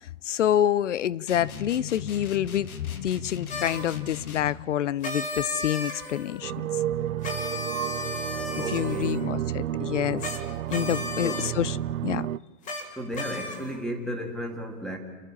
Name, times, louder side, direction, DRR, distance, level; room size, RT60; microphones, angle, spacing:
voice 1, 0.2-2.7 3.0-6.5 8.7-10.4 10.7-11.8 12.0-12.3, left 11 dB, 55° left, 0.6 m, -27 dB
sound 1, 1.3-4.7, left 6 dB, 70° left, 2.1 m, -38 dB
sound 2, 3.5-3.9 5.0-6.4 7.2-9.3 10.2-10.4 10.7-11.5 12.6-12.8 13.1-13.8, left 2 dB, 15° left, 2.2 m, -34 dB
sound 3, 6.4-12.4, right 12 dB, 65° right, 0.6 m, -31 dB
voice 2, 8.6-9.3 11.2-11.5 12.9-15.0, equal, ahead, 1.8 m, -34 dB
29.0 x 11.5 x 8.8 m
hypercardioid pair, 140°, 44 cm